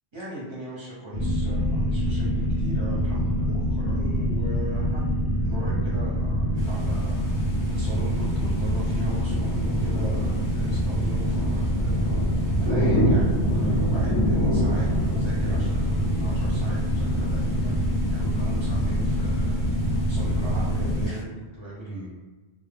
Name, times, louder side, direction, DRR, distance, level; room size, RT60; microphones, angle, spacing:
voice 1, 0.1-5.0 5.4-7.3 7.7-22.1, right 1 dB, 30° right, -8 dB, 0.7 m, -38 dB
sound 1, 1.1-21.1, equal, 65° left, 0.7 m, -25 dB
sound 2, 6.6-21.2, right 1 dB, 30° left, 0.4 m, -30 dB
2.1 x 2.0 x 3.4 m, 1.2 s
omnidirectional pair, 1.1 m